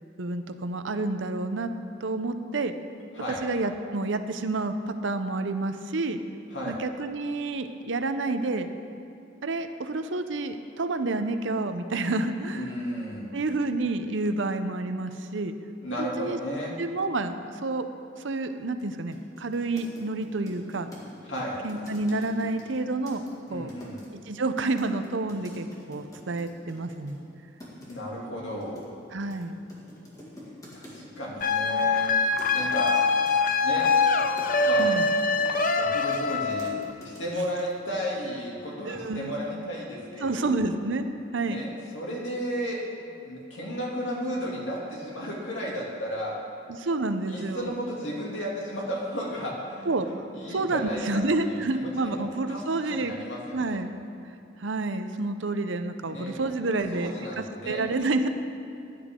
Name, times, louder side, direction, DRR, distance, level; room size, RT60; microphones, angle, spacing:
voice 1, 0.2-1.7 2.0-2.7 3.3-6.2 6.7-8.7 9.4-12.8 13.3-15.5 16.0-16.4 16.8-17.3 17.6-17.9 18.2-20.9 21.6-23.2 23.5-23.7 24.3-27.2 29.1-29.6 34.8-35.1 37.4-37.5 38.8-39.4 40.2-41.1 41.3-41.6 46.7-47.7 49.9-53.1 53.5-53.9 54.6-58.3, right 2 dB, 75° right, 9 dB, 0.7 m, -29 dB
voice 2, 12.5-13.4 15.8-16.7 21.3-21.6 23.5-24.0 27.9-28.8 30.7-32.1 32.5-33.0 33.6-33.9 34.6-34.9 35.7-36.7 37.0-40.6 41.4-46.3 47.3-53.8 56.1-57.9, equal, 80° left, -4 dB, 2.6 m, -34 dB
sound 1, 18.8-18.9 19.1-24.1 24.8-27.2 27.6-28.0 28.6-37.3 37.6-38.0, equal, 20° left, 2.0 m, -47 dB
sound 2, 31.4-36.9, left 4 dB, 45° left, 0.5 m, -24 dB
15.0 x 10.0 x 3.7 m, 2.7 s
head